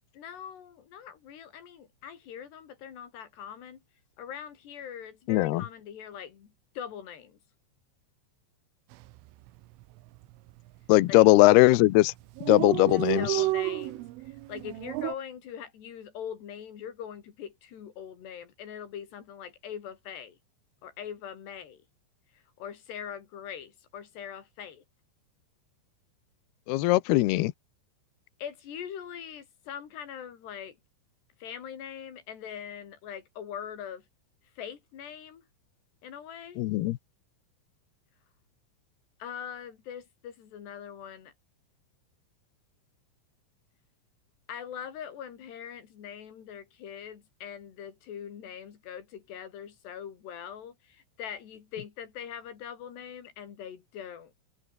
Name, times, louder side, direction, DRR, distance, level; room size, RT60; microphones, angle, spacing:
voice 1, 0.1-3.8 4.2-7.4 11.1-11.3 12.9-20.4 20.8-21.8 22.6-24.8 28.4-30.8 31.4-34.0 34.6-35.4 36.0-36.6 39.2-41.3 44.5-54.4, left 8 dB, 60° left, 5.1 m, -42 dB
voice 2, 5.3-5.6 10.9-12.1 12.5-13.4 26.7-27.5 36.6-37.0, left 18 dB, 85° left, 2.3 m, -20 dB
Dog, 8.9-9.2 9.5-9.6 9.8-10.5 11.1-11.4 11.7-11.8 12.0-12.1 12.2-15.2, right 17 dB, 80° right, 3.5 m, -31 dB
omnidirectional pair, 5.7 m